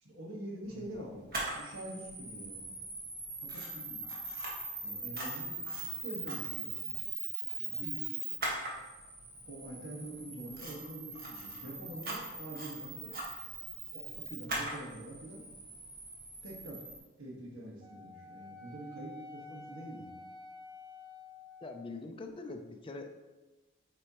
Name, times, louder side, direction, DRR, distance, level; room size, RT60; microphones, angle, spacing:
voice 1, 0.0-2.7 3.4-4.0 4.8-7.1 7.6-8.0 9.5-13.2 13.9-15.4 16.4-16.8 17.2-20.1, right 1 dB, 75° right, -2 dB, 1.4 m, -45 dB
voice 2, 0.7-1.1 21.6-23.1, left 3 dB, 25° left, 5 dB, 0.5 m, -44 dB
Camera, 1.3-17.0, right 2 dB, 50° right, 1.6 m, -40 dB
Wind instrument woodwind instrument, 17.8-22.0, left 3 dB, 25° right, 0.8 m, -50 dB
8.5 x 4.4 x 3.0 m, 1.2 s
head